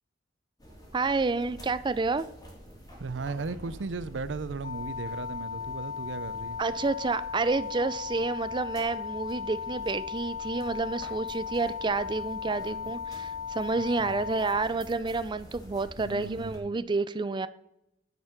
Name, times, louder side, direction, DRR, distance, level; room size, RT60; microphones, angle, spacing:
sound 1, 0.6-16.6, equal, 20° left, 2.8 m, -48 dB
voice 1, 0.9-2.3 6.6-17.5, right 3 dB, 25° right, 0.4 m, -29 dB
voice 2, 3.0-6.6 12.6-12.9 14.0-14.2 16.0-16.6, right 4 dB, 85° right, 0.6 m, -36 dB
sound 2, 4.6-14.6, left 7 dB, 40° left, 0.8 m, -37 dB
9.4 x 5.7 x 5.9 m
head